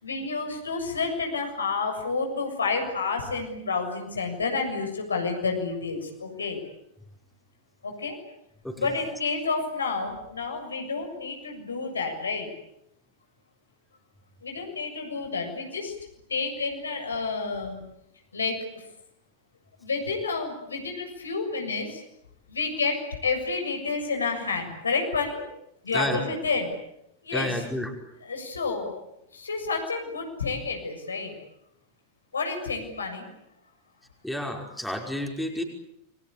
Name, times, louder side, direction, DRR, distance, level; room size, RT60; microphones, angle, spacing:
voice 1, 0.0-6.6 7.8-8.2 8.8-12.5 14.4-15.9 16.3-17.8 18.3-18.9 19.8-22.0 22.5-25.4 25.8-26.7 27.2-27.6 28.2-29.0 29.3-31.3 32.3-33.3, left 4 dB, 75° left, 3 dB, 7.2 m, -30 dB
voice 2, 25.9-26.2 27.3-27.9 34.2-35.6, left 1 dB, ahead, 2 dB, 5.4 m, -30 dB
29.0 x 23.5 x 8.5 m, 0.80 s
figure-of-eight pair, 90°, 0 cm